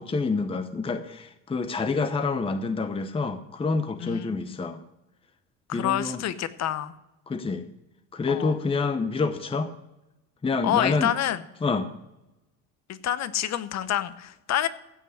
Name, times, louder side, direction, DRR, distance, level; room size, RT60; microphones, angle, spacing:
voice 1, 0.0-4.8 5.7-6.2 7.3-7.6 8.1-9.7 10.4-11.1 11.6-11.9, left 4 dB, 15° left, 9 dB, 0.8 m, -27 dB
voice 2, 4.0-4.6 5.7-6.9 8.3-8.6 10.6-11.4 12.9-14.7, left 11 dB, 50° left, 14 dB, 1.0 m, -28 dB
16.0 x 5.4 x 8.1 m, 0.95 s
supercardioid pair, 85°, 35 cm